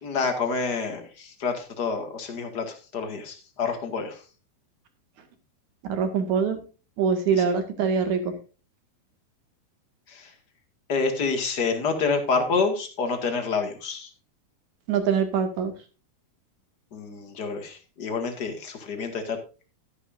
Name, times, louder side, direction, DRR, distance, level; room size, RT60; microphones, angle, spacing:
voice 1, 0.0-4.2 7.3-7.5 10.1-10.3 10.9-14.1 16.9-19.4, left 4 dB, 35° left, 5 dB, 1.8 m, -28 dB
voice 2, 5.8-6.6 7.0-8.2 14.9-15.7, right 6 dB, 55° right, 7 dB, 3.1 m, -24 dB
13.0 x 11.0 x 2.6 m, 0.33 s
omnidirectional pair, 4.5 m